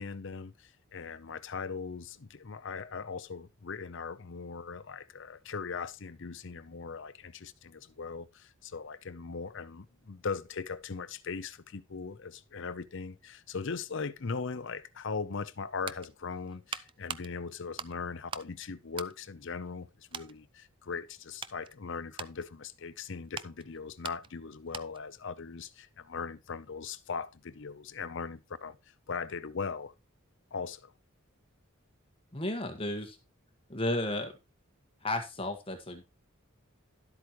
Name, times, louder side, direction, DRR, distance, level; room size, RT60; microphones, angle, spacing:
voice 1, 0.0-28.8 29.1-29.9 30.5-30.9, left 5 dB, 60° left, 0.7 m, -39 dB
sound 1, 15.6-18.6 18.9-19.8 20.1-20.4 20.9-25.1 25.4-25.6, right 6 dB, 25° right, 0.4 m, -44 dB
voice 2, 32.3-33.2 33.7-34.3 35.0-36.1, left 1 dB, 25° left, 1.6 m, -33 dB
12.0 x 8.1 x 3.1 m
head